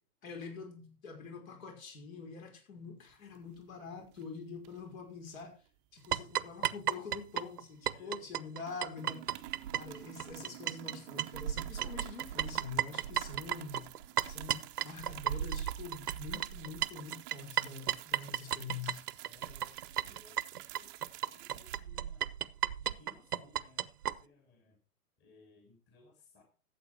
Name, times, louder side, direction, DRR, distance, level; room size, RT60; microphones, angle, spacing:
voice 1, 0.2-5.6 5.9-9.3 9.7-13.9 14.3-19.0, left 5 dB, 60° left, 5.4 m, -45 dB
sound 1, 3.1-3.8 4.0-4.3 4.6-5.4 6.0-7.9 8.2-8.4 8.6-21.8, right 16 dB, 25° right, 0.8 m, -50 dB
sound 2, 6.1-10.9 11.2-24.2, right 10 dB, 75° right, 1.0 m, -34 dB
voice 2, 7.9-8.7 19.2-20.9 21.2-22.3 22.8-24.8 25.2-26.4, left 3 dB, 20° left, 2.9 m, -62 dB
13.5 x 7.9 x 4.7 m
hypercardioid pair, 125°, 46 cm